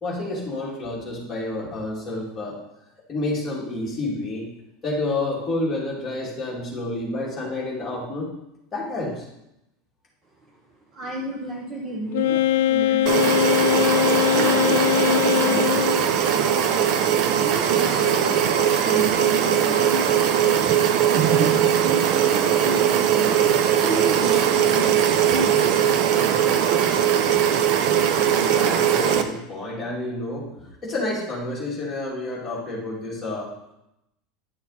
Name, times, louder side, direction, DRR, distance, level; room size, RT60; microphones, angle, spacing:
voice 1, 0.0-2.6 3.1-4.5 4.8-8.3 8.7-9.2 28.4-33.5, left 2 dB, 15° left, -5 dB, 2.5 m, -29 dB
voice 2, 10.9-14.0 14.3-26.1, right 2 dB, 15° right, -1 dB, 0.9 m, -34 dB
Wind instrument woodwind instrument, 12.1-16.2, left 13 dB, 80° left, 0.4 m, -21 dB
sound 1, 13.1-29.2, right 9 dB, 45° right, 0.7 m, -20 dB
10.5 x 6.4 x 4.2 m, 0.85 s
supercardioid pair, 175°, 0 cm